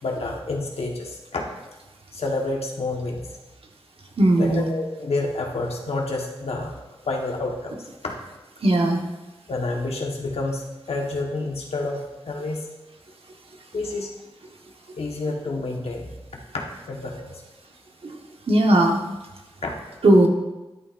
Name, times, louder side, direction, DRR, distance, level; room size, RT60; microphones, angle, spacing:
voice 1, 0.0-1.4 2.1-3.2 4.4-6.7 7.1-7.8 8.0-8.1 9.5-12.6 13.7-14.1 15.0-16.1 16.5-17.4 18.8-18.9 19.6-19.7, left 2 dB, 85° left, 0 dB, 1.4 m, -29 dB
voice 2, 4.2-4.7 8.6-9.0 18.0-18.2 18.5-19.0 20.0-20.3, right 1 dB, 70° right, 1 dB, 1.4 m, -17 dB
12.0 x 11.0 x 2.6 m, 1.1 s
cardioid pair, 50°, 10 cm